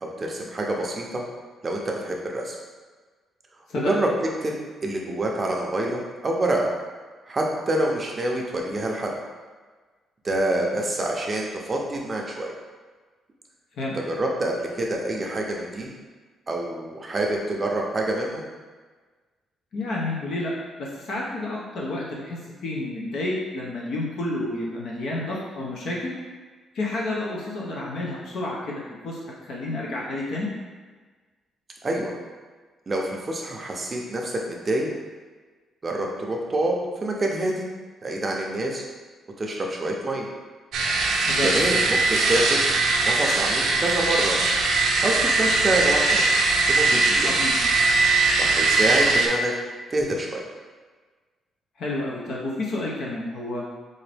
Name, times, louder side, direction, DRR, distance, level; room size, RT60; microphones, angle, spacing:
voice 1, 0.0-1.2 1.6-2.6 3.8-4.1 4.4-4.5 4.8-6.7 7.3-9.1 10.2-12.5 13.9-15.9 16.5-18.5 31.8-32.1 32.9-34.9 35.8-36.8 37.0-37.7 38.0-38.8 39.4-40.3 41.4-42.6 43.0-44.4 45.0-46.2 46.7-47.3 48.4-49.5 49.9-50.4, right 1 dB, 25° right, -1 dB, 0.5 m, -26 dB
voice 2, 19.7-20.5 20.8-26.2 26.7-30.5 41.2-41.5 47.2-47.6 51.8-53.6, left 2 dB, 60° left, -4 dB, 0.6 m, -30 dB
sound 1, 40.7-49.3, right 3 dB, 75° right, 0.5 m, -21 dB
3.8 x 2.5 x 3.3 m, 1.4 s
cardioid pair, 145°, 0 cm